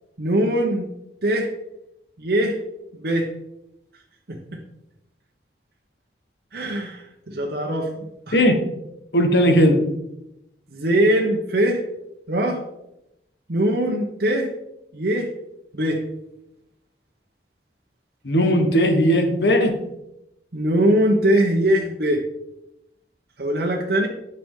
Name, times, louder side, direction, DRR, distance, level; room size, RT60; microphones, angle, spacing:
voice 1, 0.2-0.9 1.2-1.5 2.2-2.6 3.0-3.3 4.3-4.4 6.5-8.4 10.7-11.8 12.3-12.6 13.5-14.5 14.9-15.3 15.7-16.0 20.5-22.2 23.4-24.1, right 1 dB, 60° right, 0 dB, 1.0 m, -21 dB
voice 2, 9.1-9.8 18.2-19.7, equal, 70° left, 4 dB, 1.4 m, -17 dB
8.9 x 5.9 x 3.8 m, 0.86 s
head